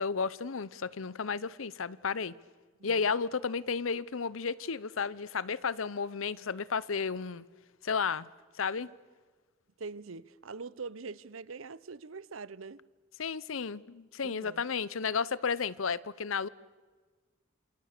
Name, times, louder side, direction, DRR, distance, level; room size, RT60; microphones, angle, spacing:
voice 1, 0.0-2.3 2.8-7.4 7.8-8.3 8.6-8.9 13.2-16.5, left 5 dB, 75° left, 0.8 m, -33 dB
voice 2, 9.8-12.8 14.2-14.7, right 4 dB, 75° right, 0.8 m, -43 dB
27.5 x 27.0 x 6.7 m
head